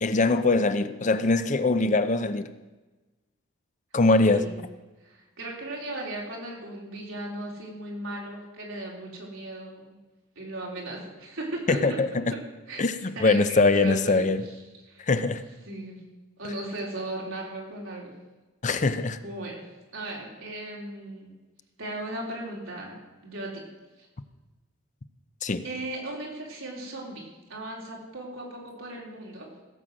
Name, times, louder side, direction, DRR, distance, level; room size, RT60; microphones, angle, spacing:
voice 1, 0.0-2.5 3.9-4.5 11.7-12.4 12.8-14.4 15.1-15.4 18.6-19.2 25.4-25.6, left 3 dB, 35° left, 11 dB, 0.6 m, -22 dB
voice 2, 4.1-4.5 5.0-10.0 10.4-12.0 12.3-12.4 12.7-12.9 13.2-14.3 14.9-15.1 15.7-16.0 16.4-18.1 19.2-19.6 19.9-21.4 21.8-23.7 25.6-29.6, right 1 dB, 75° right, -2 dB, 3.9 m, -37 dB
16.0 x 7.7 x 6.3 m, 1.2 s
head